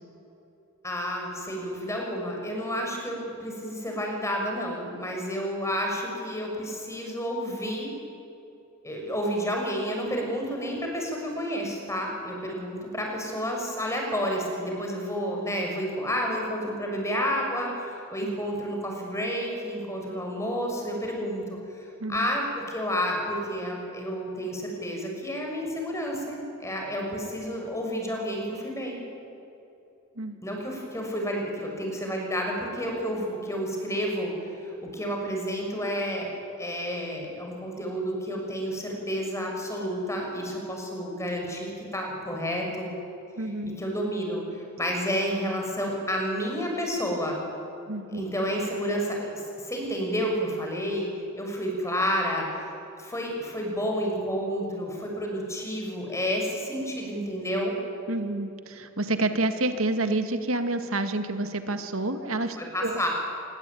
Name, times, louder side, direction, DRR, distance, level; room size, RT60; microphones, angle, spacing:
voice 1, 0.8-7.9 8.8-29.0 30.4-36.3 36.6-42.9 43.4-47.4 48.1-51.1 51.4-57.8 62.6-63.1, equal, 15° left, 1 dB, 6.3 m, -30 dB
voice 2, 22.0-22.3 30.2-30.4 43.4-43.8 47.9-48.3 58.1-63.0, right 2 dB, 80° right, 8 dB, 2.1 m, -29 dB
26.0 x 21.0 x 9.4 m, 2.8 s
head